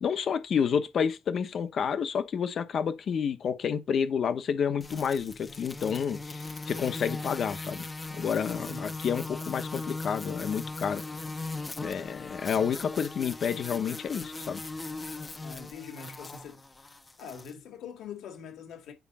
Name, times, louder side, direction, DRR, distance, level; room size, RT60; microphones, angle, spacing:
voice 1, 0.0-11.0 11.8-14.6, left 7 dB, 50° left, 1.0 m, -30 dB
sound 1, 4.8-17.5, left 3 dB, 20° left, 0.7 m, -39 dB
voice 2, 8.4-9.0 15.4-16.7 17.2-18.9, left 6 dB, 75° left, 2.1 m, -43 dB
9.6 x 5.1 x 4.2 m
cardioid pair, 135°, 0 cm